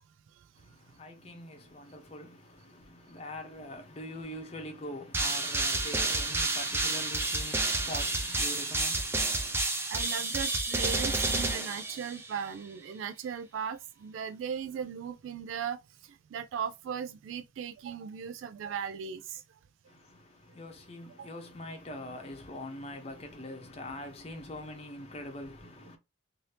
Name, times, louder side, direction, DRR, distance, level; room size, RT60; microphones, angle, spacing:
voice 1, 0.5-9.6 19.9-26.0, left 1 dB, 30° left, 0.7 m, -43 dB
sound 1, 5.1-12.4, right 2 dB, 15° right, 0.4 m, -30 dB
voice 2, 9.9-19.4 21.2-21.3, right 7 dB, 85° right, 0.3 m, -37 dB
2.7 x 2.7 x 3.2 m
head